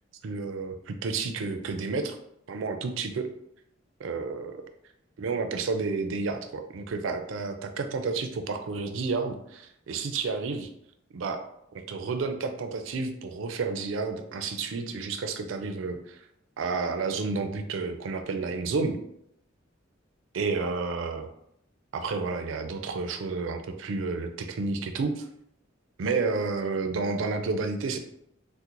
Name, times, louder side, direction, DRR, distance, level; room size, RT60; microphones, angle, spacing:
voice 1, 0.2-2.2 2.5-3.3 4.0-4.6 5.2-10.7 11.1-11.4 11.7-16.3 16.6-19.0 20.3-21.3 21.9-25.3 26.0-28.0, right 4 dB, 85° right, 7 dB, 0.4 m, -30 dB
3.7 x 2.1 x 2.9 m, 0.75 s
head